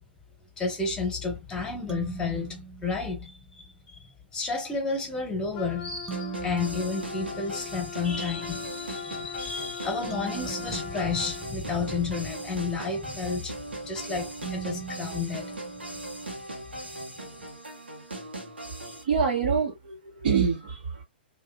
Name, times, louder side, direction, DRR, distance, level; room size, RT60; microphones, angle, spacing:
voice 1, 0.6-3.6 3.9-13.5 13.8-15.6 16.7-17.0, left 4 dB, 15° left, 1.2 m, -31 dB
sound 1, 1.9-3.6 6.1-8.1 10.1-12.2 14.4-16.5, right 9 dB, 10° right, 0.6 m, -42 dB
Wind instrument woodwind instrument, 5.5-11.5, left 8 dB, 40° left, 0.5 m, -41 dB
sound 2, 6.1-19.0, right 1 dB, 80° right, 0.9 m, -39 dB
voice 2, 19.0-21.0, right 6 dB, 60° right, 1.2 m, -26 dB
2.7 x 2.4 x 2.3 m
figure-of-eight pair, 110°, 6 cm